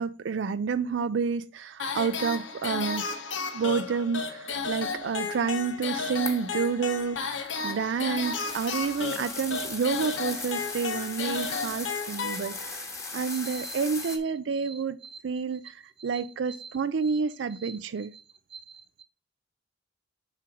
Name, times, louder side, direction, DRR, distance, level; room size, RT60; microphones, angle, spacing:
voice 1, 0.0-3.2 3.5-12.9 13.1-18.1, right 5 dB, 70° right, 0.4 m, -29 dB
sound 1, 1.8-12.9, left 4 dB, 80° left, 1.2 m, -33 dB
sound 2, 6.3-6.5 7.5-14.2, left 3 dB, 15° left, 1.3 m, -38 dB
voice 2, 13.3-14.2 14.5-15.2 15.6-15.7 16.0-17.2 17.5-18.2 18.5-19.0, right 5 dB, 30° right, 0.7 m, -47 dB
7.3 x 4.5 x 6.1 m
head